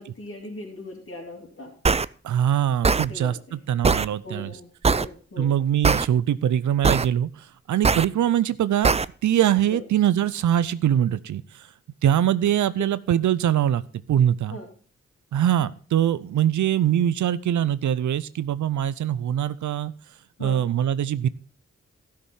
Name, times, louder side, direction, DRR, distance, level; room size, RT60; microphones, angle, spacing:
voice 1, 0.0-1.7 3.0-3.6 4.2-5.5 9.7-9.8 14.5-14.7 20.4-20.6, left 2 dB, 45° left, -1 dB, 3.5 m, -39 dB
sound 1, 1.8-2.0 2.8-3.1 3.8-4.1 4.8-5.1 5.8-6.0 6.8-7.1 7.8-8.0 8.8-9.0, right 4 dB, 20° right, 0.4 m, -20 dB
voice 2, 2.2-4.5 5.4-7.3 7.7-9.0 9.2-11.4 12.0-13.8 14.1-14.6 15.3-19.9 20.4-21.3, right 10 dB, 85° right, 17 dB, 0.5 m, -22 dB
12.5 x 6.7 x 5.6 m, 0.40 s
cardioid pair, 40°, 29 cm